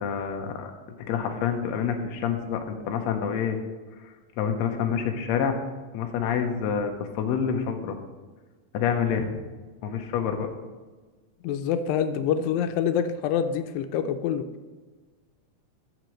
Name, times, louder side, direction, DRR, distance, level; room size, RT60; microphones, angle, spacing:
voice 1, 0.0-0.7 1.1-3.6 4.0-5.6 5.9-8.0 8.7-9.3 9.8-10.5, left 7 dB, 70° left, 4 dB, 1.7 m, -27 dB
voice 2, 11.4-14.4, left 8 dB, 90° left, 9 dB, 2.4 m, -26 dB
12.5 x 7.0 x 3.1 m, 1.3 s
omnidirectional pair, 3.9 m